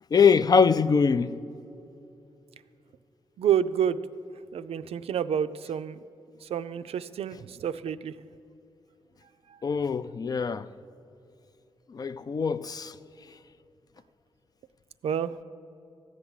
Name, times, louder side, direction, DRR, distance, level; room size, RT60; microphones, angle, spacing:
voice 1, 0.1-1.4 9.6-10.7 11.9-13.0, left 5 dB, 40° left, 0.4 m, -23 dB
voice 2, 3.4-4.0 4.5-6.0 6.4-8.2 9.5-9.6 15.0-15.4, right 9 dB, 75° right, 0.4 m, -29 dB
14.5 x 5.9 x 9.8 m
wide cardioid pair, 105°, 10 cm